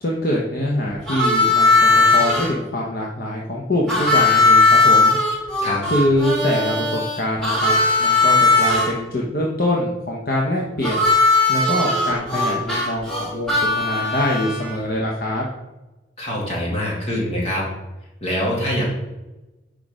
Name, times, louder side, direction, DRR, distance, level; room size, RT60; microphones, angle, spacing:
voice 1, 0.0-5.2 5.9-11.1 11.5-15.5, left 1 dB, 55° left, -3 dB, 1.0 m, -24 dB
Harmonica, 1.1-2.5 3.9-8.9 10.8-14.8, left 3 dB, 5° left, 2.2 m, -18 dB
voice 2, 16.2-17.6 18.2-18.8, equal, 35° left, -4 dB, 2.3 m, -24 dB
6.1 x 5.0 x 5.0 m, 1.1 s
head